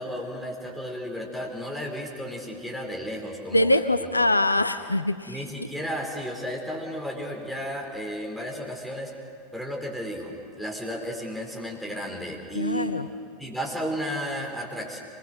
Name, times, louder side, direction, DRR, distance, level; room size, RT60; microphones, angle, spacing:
voice 1, 0.0-4.1 5.2-9.2 9.5-13.0 13.4-15.0, equal, ahead, -1 dB, 4.4 m, -33 dB
voice 2, 3.5-5.3 12.5-13.1, left 1 dB, 85° left, 12 dB, 0.6 m, -23 dB
25.0 x 20.5 x 6.4 m, 2.3 s
figure-of-eight pair, 85°, 0 cm